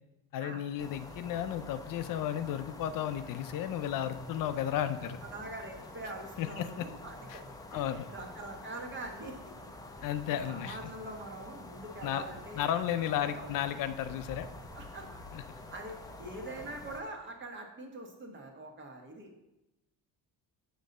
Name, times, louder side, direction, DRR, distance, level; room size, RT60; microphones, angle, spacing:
voice 1, 0.3-5.2 6.4-6.9 7.3-7.4 7.7-8.1 10.0-10.8 12.0-12.2 12.6-14.5 15.3-15.4, left 10 dB, 65° left, 11 dB, 0.5 m, -33 dB
sound 1, 0.8-17.0, left 2 dB, 10° left, 0.6 m, -48 dB
voice 2, 5.0-9.4 10.0-13.5 14.7-15.1 15.7-19.3, right 2 dB, 30° right, 3 dB, 1.3 m, -44 dB
7.2 x 4.1 x 6.5 m, 0.94 s
cardioid pair, 165°, 36 cm